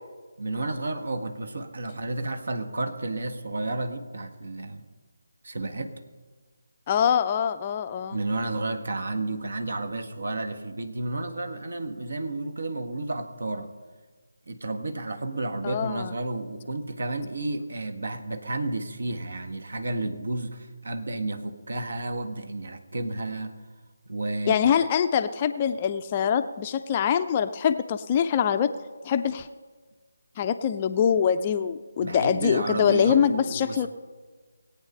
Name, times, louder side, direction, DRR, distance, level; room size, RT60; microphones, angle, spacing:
voice 1, 0.4-4.8 5.4-5.9 8.1-13.7 14.5-23.5 24.1-24.6 32.0-33.9, right 2 dB, 60° right, 8 dB, 1.6 m, -31 dB
voice 2, 6.9-8.2 15.6-16.1 24.5-28.7 29.0-29.5 30.4-33.9, left 8 dB, 25° left, 9 dB, 0.5 m, -24 dB
19.5 x 8.8 x 5.5 m, 1.4 s
figure-of-eight pair, 155°, 0 cm